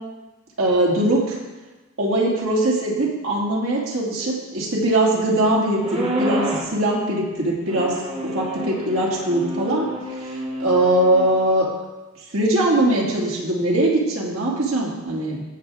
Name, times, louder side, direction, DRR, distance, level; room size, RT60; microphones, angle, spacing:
voice 1, 0.6-1.4 2.0-11.7 12.3-15.4, right 1 dB, 80° right, -3 dB, 2.5 m, -21 dB
sound 1, 5.8-6.8 7.7-11.3, equal, 30° right, 1.4 m, -28 dB
15.5 x 7.4 x 3.5 m, 1.1 s
head